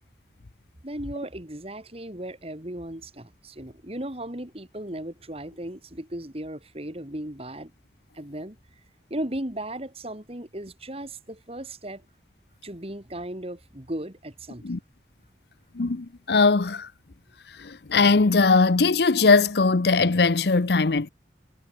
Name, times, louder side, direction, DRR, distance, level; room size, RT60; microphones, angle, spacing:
voice 1, 0.8-7.7 8.1-8.6 9.1-12.0 12.6-14.6, right 1 dB, 35° right, 3.2 m, -36 dB
voice 2, 15.7-16.9 17.6-21.1, left 4 dB, 65° left, 0.8 m, -20 dB
head